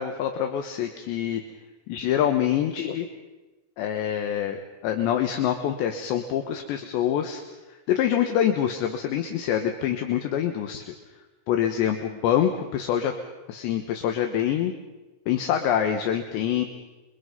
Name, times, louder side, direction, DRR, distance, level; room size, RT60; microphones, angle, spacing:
voice 1, 0.0-1.4 1.9-3.1 3.8-7.4 7.9-10.9 11.5-13.1 13.5-14.7 15.3-16.7, left 10 dB, 70° left, 5 dB, 3.1 m, -25 dB
28.5 x 23.0 x 5.4 m, 1.1 s
omnidirectional pair, 5.9 m